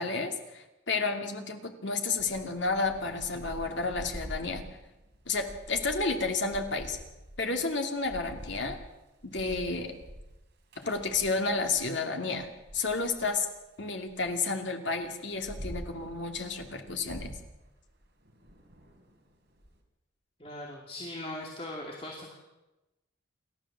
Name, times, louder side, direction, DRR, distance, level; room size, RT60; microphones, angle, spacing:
voice 1, 0.0-4.6 5.3-7.0 7.4-8.8 9.2-9.9 10.8-13.5 13.8-17.3, left 3 dB, 60° left, 4 dB, 2.5 m, -31 dB
Thunder / Rain, 2.2-11.9 12.3-14.3 14.9-19.7, equal, 55° right, 4.1 m, -46 dB
voice 2, 20.4-22.4, left 1 dB, 30° left, 0 dB, 2.7 m, -40 dB
28.5 x 13.0 x 7.5 m, 1.0 s
head